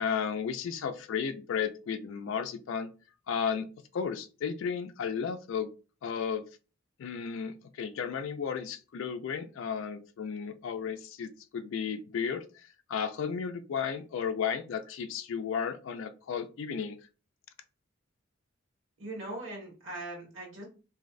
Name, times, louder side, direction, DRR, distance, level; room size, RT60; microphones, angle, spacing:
voice 1, 0.0-2.9 3.3-3.7 3.9-5.7 6.0-6.5 7.0-17.0, left 7 dB, 65° left, 8 dB, 0.3 m, -34 dB
voice 2, 19.0-20.6, right 2 dB, 65° right, -2 dB, 1.5 m, -40 dB
2.5 x 2.0 x 2.4 m, 0.33 s
head